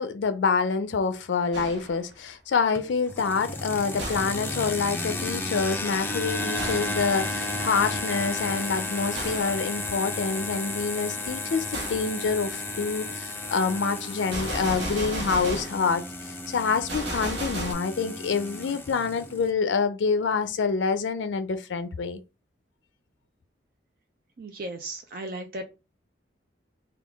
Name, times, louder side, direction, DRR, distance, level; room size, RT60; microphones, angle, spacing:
voice 1, 0.0-22.2, left 5 dB, 80° left, 0.4 m, -27 dB
Gunshot gunfire, 1.5-2.0 4.0-4.5 6.6-7.0 9.1-9.6 11.7-12.1 14.3-15.9 16.9-17.7, right 1 dB, 70° right, 1.1 m, -33 dB
sound 1, 2.7-19.5, left 2 dB, 10° left, 0.4 m, -33 dB
voice 2, 24.4-25.6, right 2 dB, 50° right, 0.4 m, -36 dB
3.7 x 2.3 x 3.4 m
head